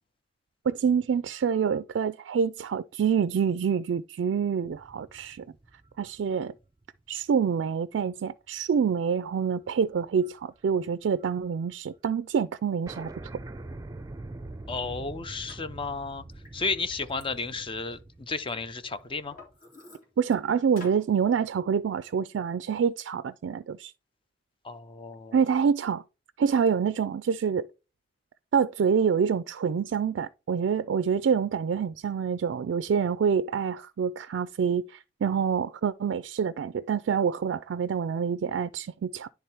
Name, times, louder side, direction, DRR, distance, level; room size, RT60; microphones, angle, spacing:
voice 1, 0.7-5.4 6.0-6.5 7.1-13.1 20.2-23.9 25.3-26.0 26.4-27.7 28.5-39.3, right 6 dB, 75° right, 0.3 m, -26 dB
sound 1, 4.6-7.2 7.7-7.8 9.3-9.7 9.9-11.4 11.7-11.8 11.9-12.0 12.4-12.5 12.9-19.6, right 2 dB, 20° right, 0.5 m, -44 dB
voice 2, 14.7-16.2 16.5-19.3 24.6-25.4, left 4 dB, 30° left, 0.5 m, -33 dB
Liquid, 15.5-15.6 16.1-18.5 19.0-20.4 20.8-21.0, left 2 dB, 50° left, 3.3 m, -49 dB
10.0 x 3.5 x 4.4 m
head